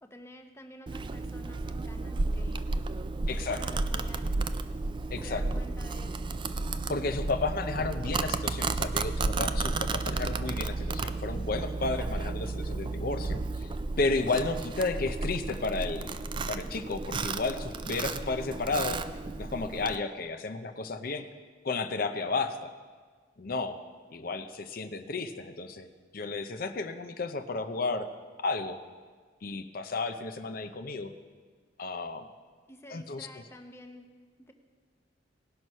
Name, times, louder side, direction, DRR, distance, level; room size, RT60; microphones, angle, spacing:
voice 1, 0.0-2.7 3.3-4.3 5.1-6.1 32.7-34.1 34.4-34.5, left 1 dB, 15° left, 5 dB, 0.8 m, -50 dB
Domestic sounds home sounds, 0.9-20.0, right 3 dB, 25° right, 0.3 m, -33 dB
voice 2, 3.3-3.6 5.1-5.4 6.9-13.7 14.0-16.2 16.5-19.0 19.4-21.3 21.6-22.7 23.4-23.8 24.1-28.1 28.4-28.8 29.4-31.1 31.8-32.3 32.9-33.3, left 3 dB, 50° left, 9 dB, 0.6 m, -33 dB
18.5 x 6.2 x 5.4 m, 1.5 s
head